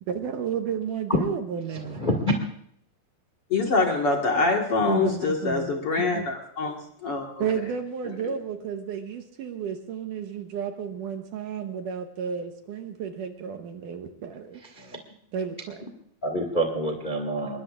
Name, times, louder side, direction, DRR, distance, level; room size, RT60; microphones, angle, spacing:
voice 1, 0.1-2.0 4.9-6.3 7.4-14.6 15.3-15.9, right 7 dB, 70° right, 5 dB, 2.3 m, -32 dB
voice 2, 1.7-2.3 14.7-15.0 16.2-17.5, equal, 30° left, 3 dB, 0.8 m, -26 dB
voice 3, 3.5-7.4, left 3 dB, 50° left, 1 dB, 2.0 m, -25 dB
25.0 x 22.0 x 2.5 m, 0.67 s
omnidirectional pair, 4.3 m